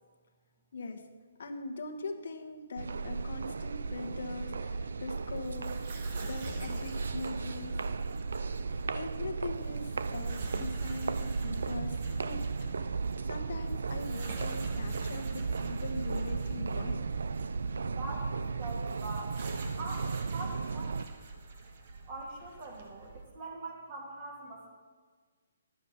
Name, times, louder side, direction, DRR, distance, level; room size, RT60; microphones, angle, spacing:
voice 1, 0.7-1.1 1.4-7.8 8.9-12.5 12.8-17.1, left 3 dB, 65° left, 6 dB, 1.1 m, -41 dB
sound 1, 2.8-21.1, right 4 dB, 75° right, 0.4 m, -35 dB
sound 2, 5.1-23.2, right 3 dB, 55° right, 1.5 m, -47 dB
voice 2, 18.0-19.4 19.8-21.0 22.1-24.7, right 2 dB, 30° right, -2 dB, 2.6 m, -43 dB
10.5 x 7.1 x 5.4 m, 1.5 s
hypercardioid pair, 145°, 0 cm